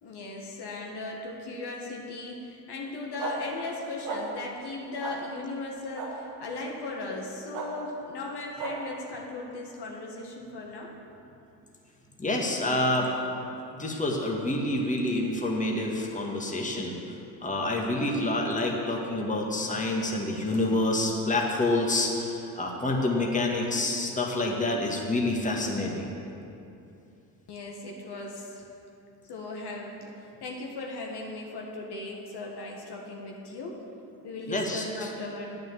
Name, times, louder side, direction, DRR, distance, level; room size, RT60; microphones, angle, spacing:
voice 1, 0.0-10.9 17.9-18.3 27.5-28.7 29.3-33.8 34.2-35.6, left 2 dB, 55° left, -1 dB, 1.9 m, -37 dB
sound 1, 3.2-3.3 4.0-4.2 5.0-5.1 6.0-6.1 7.5-7.7 8.6-8.7, right 6 dB, 85° right, 1.8 m, -34 dB
voice 2, 12.2-13.1 13.7-17.0 17.4-26.1 34.5-34.8, left 2 dB, 15° left, -1 dB, 1.8 m, -27 dB
8.9 x 6.8 x 8.3 m, 2.7 s
hypercardioid pair, 60°, 49 cm